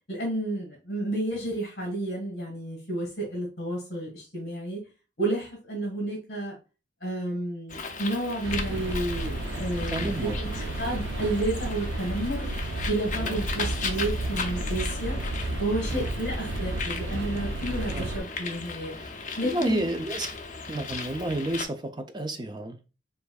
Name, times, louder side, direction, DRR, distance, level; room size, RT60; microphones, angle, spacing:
voice 1, 0.1-4.8 5.2-6.6 7.0-12.4 12.9-15.2 15.6-18.9 19.4-19.8, right 1 dB, 60° left, 1.6 m, -31 dB
Bird, 7.7-21.7, left 4 dB, 40° left, 0.6 m, -37 dB
sound 1, 8.4-18.2, right 2 dB, 85° right, 0.5 m, -32 dB
voice 2, 9.9-10.4 13.2-13.3 15.9-16.0 17.9-18.1 19.0-19.1 19.4-20.4 20.7-22.8, right 1 dB, 25° right, 0.5 m, -31 dB
6.8 x 2.6 x 2.3 m
head